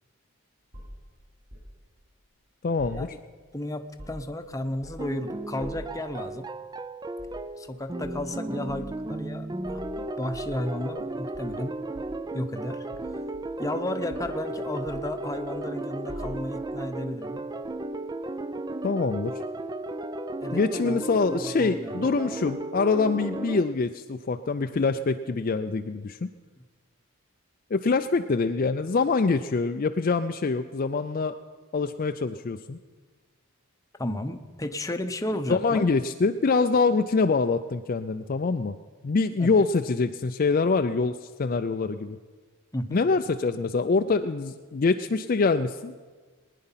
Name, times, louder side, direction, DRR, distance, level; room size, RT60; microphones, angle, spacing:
sound 1, 0.7-1.7 2.8-3.5 3.8-4.4 4.8-5.2 5.6-6.0 7.1-7.4 8.0-8.3 8.7-8.9 9.6-11.1 11.3-12.3 12.9-13.8 14.1-14.4 14.9-15.7 16.1-16.7 17.6-17.8, equal, 50° right, 6.5 m, -44 dB
voice 1, 2.6-3.1 18.8-19.4 20.5-26.3 27.7-31.4 31.7-32.8 35.5-38.8 39.0-42.2 42.9-45.9, left 4 dB, 40° left, 7 dB, 0.4 m, -25 dB
voice 2, 3.5-6.5 7.6-11.8 12.3-12.9 13.6-17.5 20.4-21.0 21.4-22.1 34.0-35.9 39.4-39.6 42.7-43.0, left 1 dB, 15° left, 7 dB, 0.7 m, -33 dB
sound 2, 5.0-23.6, right 2 dB, 20° right, 0.4 m, -35 dB
20.5 x 10.0 x 5.7 m, 1.4 s
head